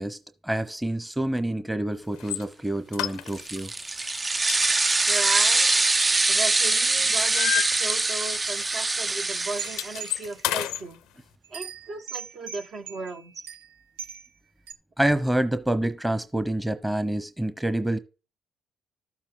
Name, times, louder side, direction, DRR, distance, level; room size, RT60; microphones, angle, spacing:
voice 1, 0.0-3.7 15.0-18.0, right 1 dB, 10° right, 1.0 m, -27 dB
sound 1, 2.2-2.4 2.9-3.7 4.0-4.2 4.5-6.6 6.9-8.4 8.6-8.8 9.1-10.8, left 14 dB, 75° left, 0.5 m, -31 dB
sound 2, 3.3-10.3, right 3 dB, 30° right, 0.5 m, -24 dB
voice 2, 5.1-5.7 6.3-11.0 11.5-13.3, right 3 dB, 55° right, 1.5 m, -36 dB
sound 3, 7.7-7.9 8.5-10.8 11.4-14.3 14.7-14.8, right 7 dB, 85° right, 0.6 m, -41 dB
13.0 x 7.3 x 4.0 m
hypercardioid pair, 50°, 0 cm